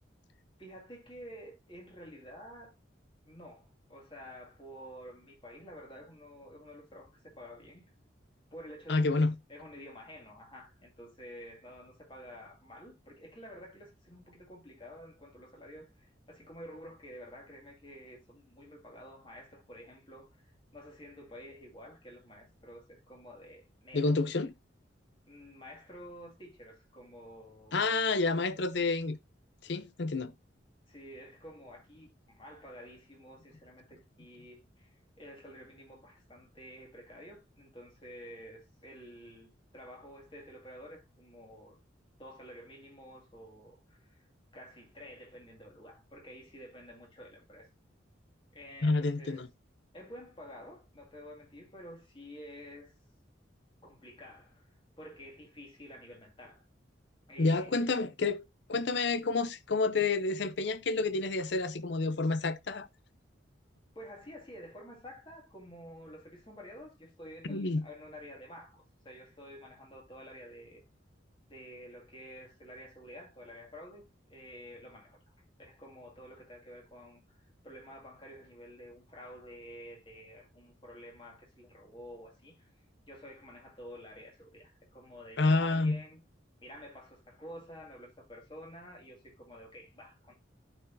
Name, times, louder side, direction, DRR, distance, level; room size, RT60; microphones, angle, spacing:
voice 1, 0.6-2.8 3.3-7.9 8.5-9.2 9.5-20.4 20.7-24.1 25.3-27.9 28.5-28.6 30.9-41.8 42.2-44.3 44.5-47.7 48.5-49.4 49.9-52.9 53.8-54.7 55.0-56.7 57.3-57.9 63.9-70.8 71.5-75.2 75.6-77.2 77.6-82.7 83.1-86.2 86.6-90.3, equal, 25° left, 2.2 m, -50 dB
voice 2, 8.9-9.3 23.9-24.5 27.7-29.2 29.6-30.3 48.8-49.5 57.4-62.9 67.4-67.8 85.4-86.0, left 3 dB, 65° left, 0.6 m, -29 dB
13.0 x 4.6 x 2.6 m
head